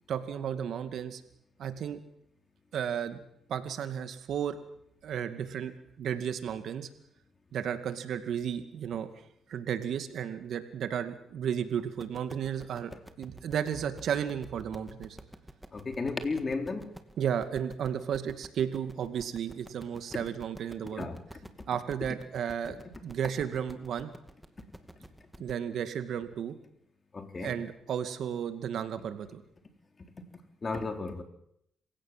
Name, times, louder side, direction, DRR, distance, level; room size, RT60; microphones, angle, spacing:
voice 1, 0.1-1.2 1.6-2.0 2.7-3.2 3.5-4.6 5.0-5.7 6.0-6.9 7.5-9.2 9.5-12.9 13.2-15.2 17.2-21.1 21.7-24.1 25.4-26.6 27.4-29.4, right 8 dB, 75° right, 2.3 m, -33 dB
sound 1, 12.0-25.6, right 1 dB, 5° right, 2.4 m, -50 dB
voice 2, 15.7-16.9 21.0-21.2 27.1-27.5 30.6-31.2, left 3 dB, 40° left, 3.7 m, -33 dB
27.0 x 16.5 x 7.6 m
cardioid pair, 70°, 0 cm